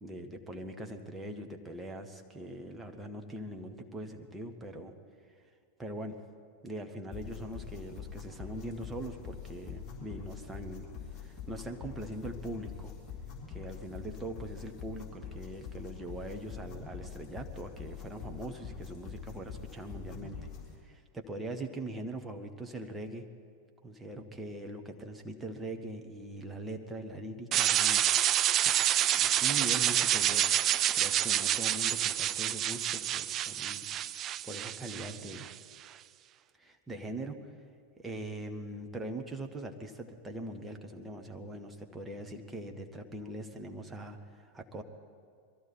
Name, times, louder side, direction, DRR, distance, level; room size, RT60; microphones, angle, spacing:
voice 1, 0.0-4.9 5.3-5.4 5.8-6.2 6.6-10.9 11.1-12.9 13.5-20.4 20.8-23.3 23.8-28.0 28.6-30.5 30.9-33.9 34.2-35.5 36.6-37.5 38.0-44.8, right 1 dB, 10° right, 3 dB, 1.2 m, -42 dB
sound 1, 7.1-20.7, left 7 dB, 20° left, 3.9 m, -45 dB
sound 2, 27.5-35.5, right 11 dB, 30° right, 0.4 m, -28 dB
22.5 x 14.5 x 4.4 m, 2.2 s
figure-of-eight pair, 90°, 0 cm